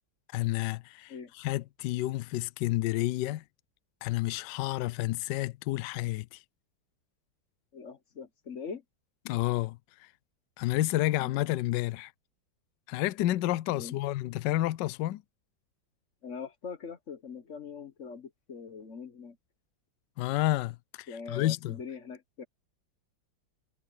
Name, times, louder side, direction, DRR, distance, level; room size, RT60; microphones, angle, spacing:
voice 1, 0.3-3.4 4.0-6.4 9.3-10.1 10.6-12.1 12.9-15.2 20.2-21.8, left 16 dB, 75° left, 1.2 m, -30 dB
voice 2, 7.7-8.8 11.2-11.3 13.7-14.0 16.2-19.4 21.1-22.4, left 5 dB, 45° left, 1.3 m, -42 dB
omnidirectional pair, 2.0 m